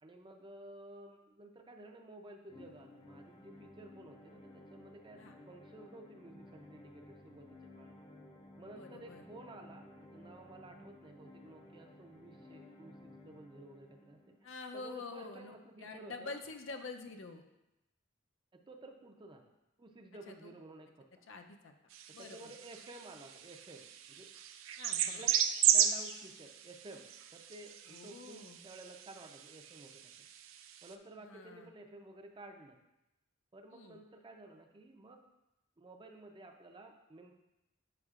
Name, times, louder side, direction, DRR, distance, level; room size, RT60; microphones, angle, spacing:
voice 1, 0.0-8.0 8.6-14.4 14.7-16.4 18.5-19.5 19.8-21.3 22.2-23.9 24.2-24.3 25.1-25.4 25.7-30.1 30.8-32.8 33.5-35.2 35.8-37.3, right 2 dB, 25° right, 4 dB, 0.5 m, -53 dB
sound 1, 2.5-14.5, left 1 dB, 25° left, 0.5 m, -56 dB
voice 2, 8.8-9.2 14.4-17.4 20.3-20.5 21.3-21.7 22.1-22.4 24.8-25.2 27.9-28.6 31.2-31.7 33.7-34.0, left 3 dB, 70° left, 5 dB, 0.6 m, -47 dB
sound 2, 21.9-30.9, right 10 dB, 85° right, 0.4 m, -35 dB
7.8 x 5.3 x 2.4 m, 0.93 s
head